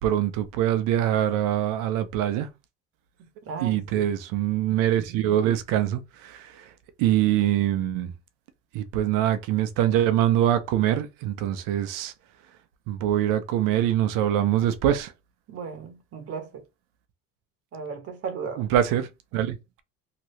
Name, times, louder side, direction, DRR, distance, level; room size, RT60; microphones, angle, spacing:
voice 1, 0.0-2.5 3.6-6.6 7.0-8.1 8.7-12.1 12.9-15.1 18.6-19.8, right 11 dB, 75° right, 0.7 m, -24 dB
voice 2, 3.4-4.1 15.5-16.6 17.7-18.7, right 5 dB, 45° right, 1.0 m, -36 dB
2.9 x 2.6 x 3.1 m
cardioid pair, 115°, 33 cm